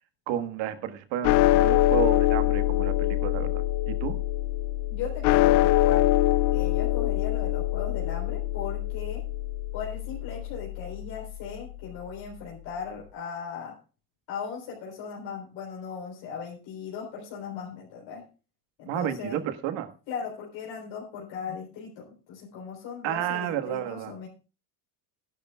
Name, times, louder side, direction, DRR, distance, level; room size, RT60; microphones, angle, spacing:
voice 1, 0.3-4.1 18.9-19.9 23.0-24.1, right 11 dB, 65° right, 9 dB, 1.6 m, -31 dB
sound 1, 1.2-11.7, left 15 dB, 75° left, 0.6 m, -24 dB
voice 2, 4.9-6.1 6.5-9.3 9.7-13.8 14.3-18.2 18.8-19.4 20.1-24.3, left 6 dB, 60° left, -3 dB, 4.0 m, -38 dB
17.0 x 11.5 x 2.3 m, 0.34 s
cardioid pair, 150°, 48 cm